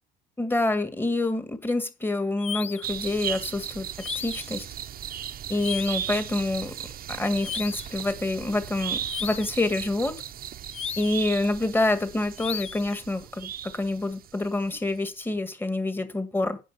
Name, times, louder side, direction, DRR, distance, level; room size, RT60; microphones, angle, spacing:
voice 1, 0.4-3.9 4.2-4.7 5.5-6.7 7.1-10.2 11.0-16.6, left 2 dB, 10° left, 1.9 m, -27 dB
sound 1, 2.4-2.9 4.0-4.6 5.6-6.1 7.4-8.0 9.1-9.6 10.7-11.3 12.4-12.9, left 8 dB, 35° left, 0.6 m, -35 dB
sound 2, 2.8-14.5 14.8-14.9, right 10 dB, 45° right, 1.0 m, -37 dB
10.0 x 5.2 x 7.2 m
hypercardioid pair, 75°, 21 cm